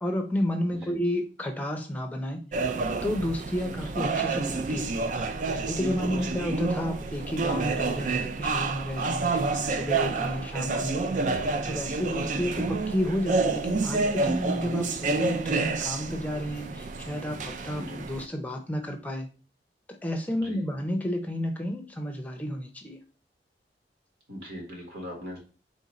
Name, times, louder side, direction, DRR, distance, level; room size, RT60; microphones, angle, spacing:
voice 1, 0.0-2.4 3.0-4.9 5.5-19.3 20.0-23.0, equal, 10° left, 3 dB, 0.6 m, -31 dB
sound 1, 2.5-18.3, right 3 dB, 45° right, 0.3 m, -29 dB
voice 2, 24.3-25.4, equal, 80° right, -1 dB, 1.6 m, -40 dB
3.8 x 2.6 x 4.0 m, 0.36 s
head